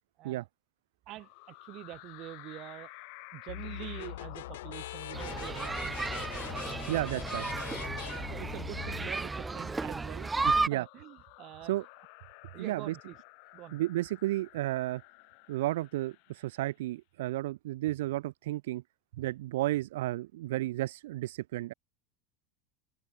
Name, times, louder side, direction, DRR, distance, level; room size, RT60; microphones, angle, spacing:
sound 1, 1.1-16.7, left 40 dB or more, 65° left, 5.0 m, -52 dB
voice 1, 1.1-2.9 3.3-6.4 7.9-10.3 10.7-11.7 12.5-13.2 13.5-13.8, right 16 dB, 50° right, 1.2 m, -45 dB
sound 2, 3.5-9.1, left 14 dB, 80° left, 1.9 m, -42 dB
sound 3, 5.1-10.7, right 3 dB, 15° right, 0.6 m, -33 dB
voice 2, 6.9-7.5 10.4-10.8 11.7-11.8 12.6-13.0 13.7-15.0 15.5-18.8 19.2-21.7, right 16 dB, 80° right, 0.5 m, -32 dB
supercardioid pair, 110°, 0 cm